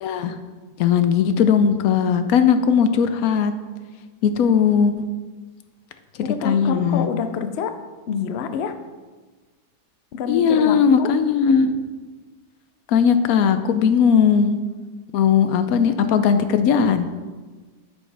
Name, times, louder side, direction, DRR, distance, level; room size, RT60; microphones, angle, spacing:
voice 1, 0.0-0.3 0.8-3.5 4.2-4.9 6.4-7.1 10.3-11.7 12.9-14.6 15.1-17.0, left 7 dB, 80° left, 9 dB, 1.1 m, -18 dB
voice 2, 6.2-7.8 8.1-8.8 10.1-11.1, left 6 dB, 60° left, 9 dB, 0.7 m, -27 dB
9.0 x 7.2 x 3.3 m, 1.4 s
omnidirectional pair, 1.5 m